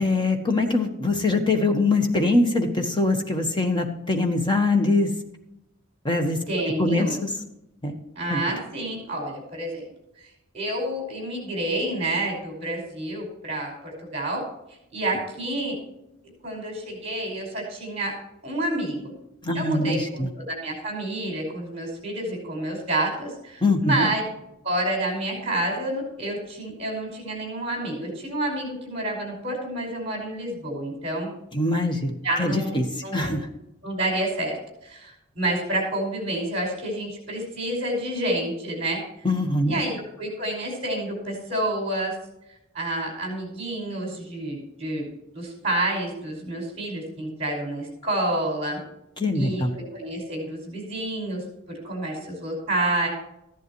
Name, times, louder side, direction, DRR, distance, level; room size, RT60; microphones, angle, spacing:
voice 1, 0.0-5.1 6.0-6.4 6.8-7.3 7.8-7.9 8.3-8.4 19.4-20.3 23.6-24.1 31.5-32.1 32.4-32.8 33.1-33.5 39.2-39.8 49.2-49.7, left 2 dB, 25° left, 4 dB, 1.3 m, -23 dB
voice 2, 6.5-7.2 8.2-9.8 10.5-14.4 14.9-15.8 16.4-18.1 18.4-19.1 19.5-24.2 24.6-31.3 32.2-32.8 33.0-33.4 33.8-34.6 34.8-39.0 39.7-42.2 42.7-45.1 45.3-48.8 49.3-51.4 51.8-53.1, right 1 dB, 30° right, 0 dB, 5.2 m, -29 dB
14.5 x 11.0 x 3.1 m, 0.86 s
head